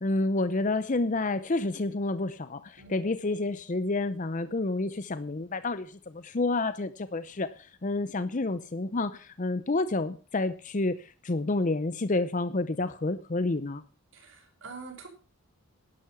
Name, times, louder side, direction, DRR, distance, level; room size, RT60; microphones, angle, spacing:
voice 1, 0.0-13.8, left 2 dB, 35° left, 13 dB, 0.6 m, -29 dB
voice 2, 14.1-15.1, right 4 dB, 55° right, 1 dB, 5.2 m, -45 dB
11.5 x 11.5 x 5.7 m, 0.34 s
head